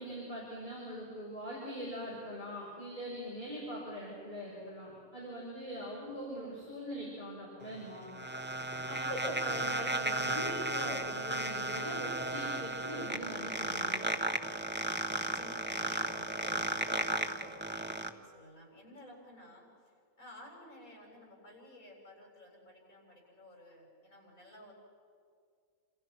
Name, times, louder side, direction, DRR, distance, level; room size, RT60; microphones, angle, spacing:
voice 1, 0.0-8.2 8.9-14.1, equal, 30° left, -5 dB, 6.5 m, -42 dB
sound 1, 7.6-18.1, right 1 dB, 10° right, 1.1 m, -34 dB
voice 2, 14.9-24.7, left 1 dB, 75° left, -2 dB, 8.6 m, -53 dB
28.5 x 27.5 x 6.1 m, 2.2 s
omnidirectional pair, 1.5 m